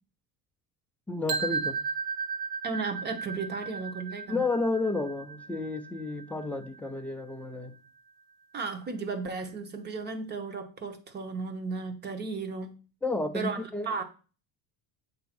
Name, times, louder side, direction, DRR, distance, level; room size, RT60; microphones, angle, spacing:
voice 1, 1.1-1.8 4.3-7.7 13.0-13.9, left 3 dB, 5° left, 0.3 m, -31 dB
sound 1, 1.3-7.2, right 5 dB, 85° right, 0.9 m, -35 dB
voice 2, 2.6-4.4 8.5-12.8 13.3-14.0, right 4 dB, 25° right, 0.9 m, -35 dB
7.9 x 2.7 x 5.8 m
cardioid pair, 160°, 41 cm